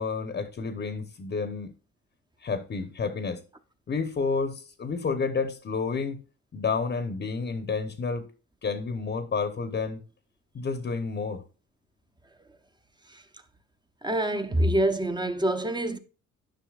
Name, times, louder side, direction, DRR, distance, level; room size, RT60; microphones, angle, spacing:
voice 1, 0.0-1.7 2.4-3.4 3.9-6.2 6.5-8.3 8.6-10.0 10.5-11.4, left 4 dB, 35° left, 0.9 m, -30 dB
voice 2, 14.0-16.0, right 1 dB, 15° right, 0.8 m, -26 dB
10.5 x 5.7 x 2.4 m
cardioid pair, 90°, 30 cm